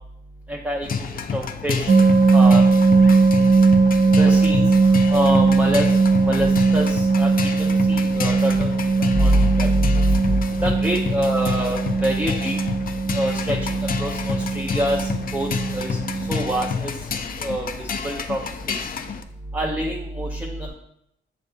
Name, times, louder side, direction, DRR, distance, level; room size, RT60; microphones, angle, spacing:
voice 1, 0.5-0.9 1.3-1.9 2.3-2.6 4.2-4.6 5.1-5.9 6.2-6.5 6.7-8.7 9.1-12.6 13.1-13.6 14.0-16.0 16.3-16.9 17.4-18.4 18.7-18.8 19.5-20.7, right 1 dB, 5° right, -1 dB, 0.6 m, -24 dB
sound 1, 0.8-19.2, left 6 dB, 45° left, 0.4 m, -29 dB
sound 2, 1.9-16.8, right 4 dB, 50° right, 0.5 m, -19 dB
7.4 x 2.6 x 2.3 m, 0.74 s
cardioid pair, 75°, 21 cm